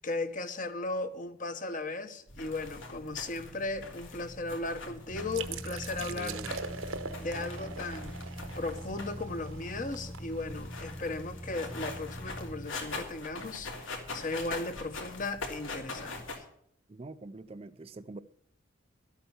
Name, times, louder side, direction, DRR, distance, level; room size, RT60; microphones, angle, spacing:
voice 1, 0.0-6.4 7.2-8.2 8.6-16.4, left 2 dB, 40° left, 1.1 m, -36 dB
sound 1, 2.3-16.4, left 3 dB, 70° left, 3.2 m, -43 dB
sound 2, 5.1-12.7, equal, 5° left, 0.7 m, -43 dB
sound 3, 5.3-10.9, right 5 dB, 80° right, 1.0 m, -42 dB
voice 2, 6.1-6.8 16.9-18.2, right 2 dB, 30° right, 0.4 m, -45 dB
13.0 x 8.7 x 7.0 m
head